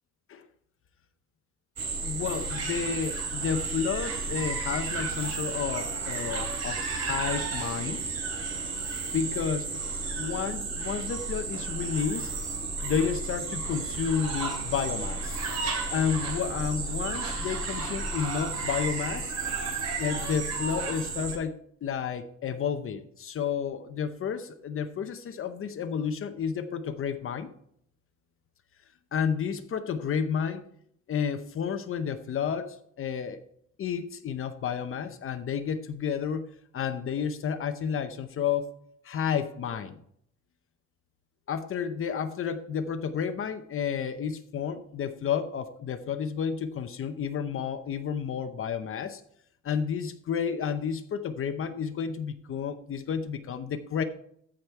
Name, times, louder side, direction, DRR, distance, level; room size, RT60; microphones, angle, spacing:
sound 1, 1.8-21.4, right 4 dB, 55° right, 3.0 m, -32 dB
voice 1, 2.0-8.0 9.1-9.7 10.2-12.3 12.8-15.4 15.9-19.3 20.0-21.6 21.8-27.5 29.1-30.7 31.1-33.4 33.8-36.5 36.7-38.8 39.0-40.0 41.5-49.2 49.6-54.0, left 7 dB, 45° left, 8 dB, 0.7 m, -31 dB
14.5 x 5.1 x 4.5 m, 0.67 s
cardioid pair, 165°, 30 cm